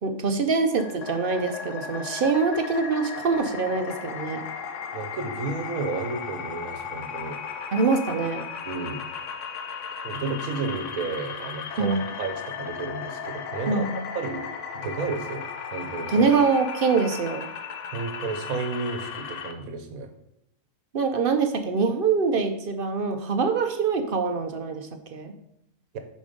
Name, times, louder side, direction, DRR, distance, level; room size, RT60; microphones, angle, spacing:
voice 1, 0.0-4.4 7.7-8.4 11.8-12.0 13.7-14.0 16.1-17.5 20.9-25.3, right 4 dB, 50° right, 7 dB, 0.7 m, -24 dB
sound 1, 0.8-19.5, left 6 dB, 65° left, 1.0 m, -36 dB
voice 2, 4.9-7.4 8.6-9.0 10.0-13.8 14.1-14.5 14.7-16.3 17.9-20.1 25.9-26.0, right 4 dB, 90° right, 6 dB, 1.4 m, -32 dB
7.0 x 5.2 x 5.1 m, 0.79 s
omnidirectional pair, 1.4 m